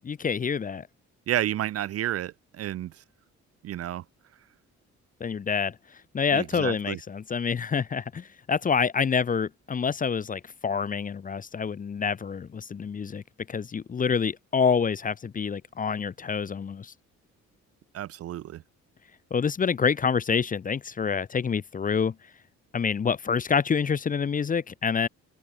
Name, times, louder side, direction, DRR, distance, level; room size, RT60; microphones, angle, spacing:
voice 1, 0.0-0.9 5.2-5.8 6.1-16.9 19.3-22.1 22.7-25.1, left 6 dB, 30° left, 0.5 m, -27 dB
voice 2, 1.3-2.9 3.6-4.0 6.3-7.0 17.9-18.6, right 12 dB, 50° right, 0.5 m, -31 dB
open air
cardioid pair, 90°, 30 cm